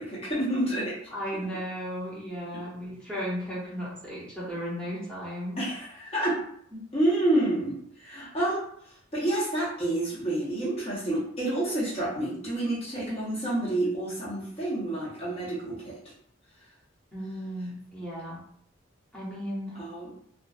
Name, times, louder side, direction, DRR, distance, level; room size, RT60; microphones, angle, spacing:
voice 1, 0.0-1.0 5.6-6.4 6.9-8.7 9.1-16.0 19.8-20.1, right 1 dB, 30° left, -8 dB, 0.8 m, -28 dB
voice 2, 1.1-5.6 6.7-6.8 17.1-18.4 19.1-19.8, equal, 5° left, -9 dB, 0.9 m, -35 dB
2.5 x 2.2 x 2.3 m, 0.67 s
head